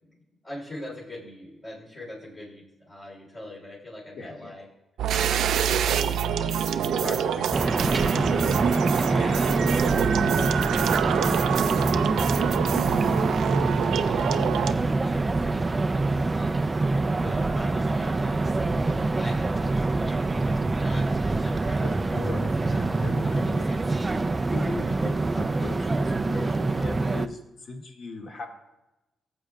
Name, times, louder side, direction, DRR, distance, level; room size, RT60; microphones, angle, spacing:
voice 1, 0.0-4.7 5.4-6.6 9.0-24.0, left 1 dB, 35° left, -6 dB, 3.2 m, -44 dB
voice 2, 4.1-4.6 6.8-8.7 14.5-14.7 17.2-17.6 21.8-23.8 24.5-28.5, left 3 dB, 55° left, 1 dB, 1.7 m, -38 dB
sound 1, 5.0-14.7, right 8 dB, 85° right, 0.4 m, -26 dB
sound 2, 7.5-27.3, right 3 dB, 20° right, 0.4 m, -25 dB
17.0 x 7.6 x 2.3 m, 0.98 s
cardioid pair, 120°, 0 cm